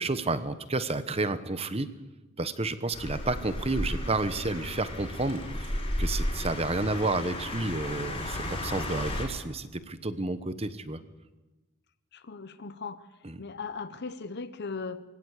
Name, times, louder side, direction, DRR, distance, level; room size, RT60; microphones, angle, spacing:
voice 1, 0.0-1.9 2.4-5.7 6.0-11.0 13.2-13.4, right 2 dB, 30° right, 12 dB, 1.0 m, -31 dB
sound 1, 2.9-9.2, left 1 dB, 25° left, 4.7 m, -33 dB
voice 2, 12.1-13.0 13.4-15.0, left 4 dB, 50° left, 12 dB, 0.8 m, -38 dB
23.0 x 16.5 x 8.2 m, 1.1 s
head